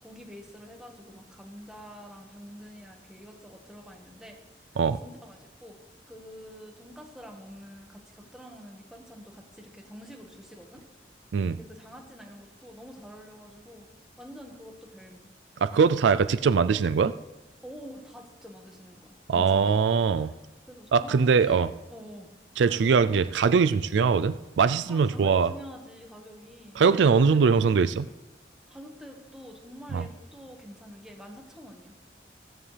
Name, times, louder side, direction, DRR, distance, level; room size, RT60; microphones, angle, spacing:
voice 1, 0.0-4.4 4.7-5.8 6.1-10.8 11.5-13.9 14.2-15.3 17.6-19.8 20.1-20.4 20.6-22.3 22.6-23.0 24.9-27.6 28.7-31.9, equal, 5° right, 0 dB, 1.5 m, -46 dB
voice 2, 15.6-17.1 19.3-20.3 20.9-21.7 22.6-25.5 26.8-28.1 29.9-30.0, right 5 dB, 85° right, 13 dB, 0.4 m, -22 dB
15.0 x 14.5 x 3.4 m, 1.1 s
head